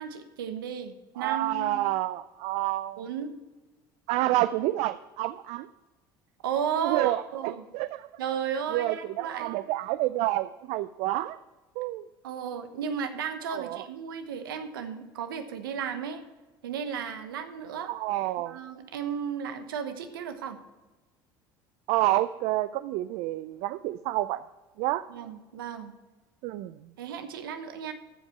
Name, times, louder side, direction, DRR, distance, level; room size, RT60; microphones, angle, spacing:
voice 1, 0.0-1.8 3.0-3.3 6.4-7.6 8.2-9.6 12.2-16.2 16.6-17.9 18.5-20.6 25.1-25.9 27.0-27.9, right 7 dB, 90° right, 9 dB, 1.1 m, -34 dB
voice 2, 1.2-3.0 4.1-5.7 6.8-8.1 8.7-11.4 11.8-12.0 13.5-13.8 17.8-18.6 21.9-24.4 24.8-25.0 26.4-26.8, right 16 dB, 65° right, 13 dB, 0.4 m, -29 dB
14.0 x 5.2 x 5.8 m, 1.2 s
hypercardioid pair, 75°, 11 cm